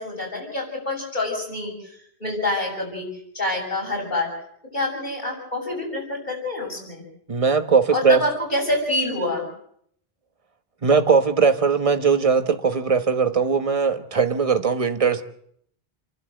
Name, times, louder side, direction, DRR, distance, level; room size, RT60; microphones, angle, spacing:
voice 1, 0.0-3.1 3.3-4.3 4.7-7.0 7.9-9.4, left 2 dB, 50° left, 7.7 m, -27 dB
voice 2, 7.3-8.2 10.8-15.2, right 5 dB, 35° right, 1.3 m, -19 dB
29.0 x 12.0 x 7.8 m
omnidirectional pair, 1.0 m